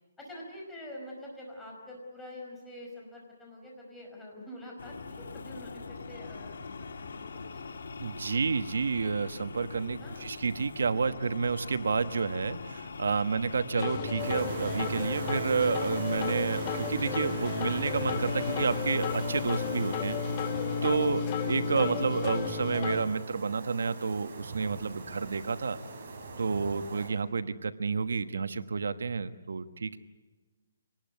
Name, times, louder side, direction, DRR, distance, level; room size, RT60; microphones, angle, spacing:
voice 1, 0.2-7.8 10.0-10.3 26.6-26.8, left 1 dB, 5° left, -2 dB, 5.2 m, -46 dB
sound 1, 4.8-21.2, left 4 dB, 75° left, 2.7 m, -43 dB
voice 2, 8.0-20.2 20.8-25.8 26.4-30.0, right 5 dB, 80° right, 11 dB, 1.2 m, -30 dB
sound 2, 13.7-23.0, left 5 dB, 25° left, 1.9 m, -33 dB
sound 3, 14.2-27.1, right 3 dB, 40° right, 5.7 m, -42 dB
25.0 x 19.5 x 9.6 m, 1.3 s
hypercardioid pair, 170°, 0 cm